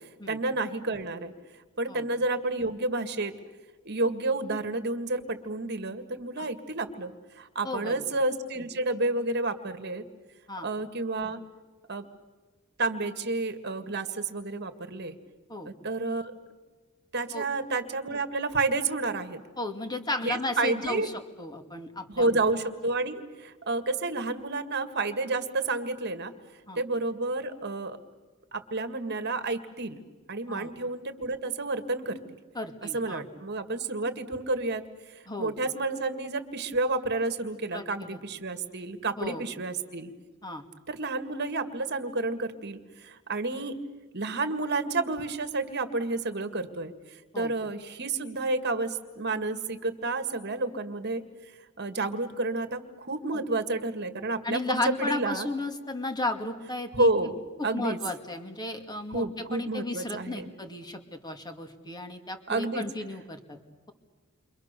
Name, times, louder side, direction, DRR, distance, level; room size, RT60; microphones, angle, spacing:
voice 1, 0.3-1.3 1.8-3.3 3.9-10.0 10.6-11.4 11.9-12.0 12.8-15.2 15.7-16.3 17.1-19.4 20.2-21.1 22.1-26.3 26.8-28.0 28.5-30.0 30.3-32.2 32.8-34.8 35.4-40.1 40.9-43.8 44.1-46.9 47.4-51.2 51.8-55.5 56.9-58.0 59.1-60.5 62.5-62.8, right 2 dB, 55° right, 8 dB, 2.0 m, -30 dB
voice 2, 7.6-7.9 10.5-10.7 15.5-15.7 17.3-17.5 19.6-21.1 21.4-22.4 26.7-26.8 30.5-30.7 32.5-33.2 35.3-35.5 37.7-38.2 39.2-39.4 40.4-40.6 47.3-47.5 53.3-53.4 54.4-57.1 57.6-63.6, left 2 dB, 20° left, 6 dB, 2.3 m, -34 dB
29.5 x 25.0 x 6.8 m, 1.3 s
head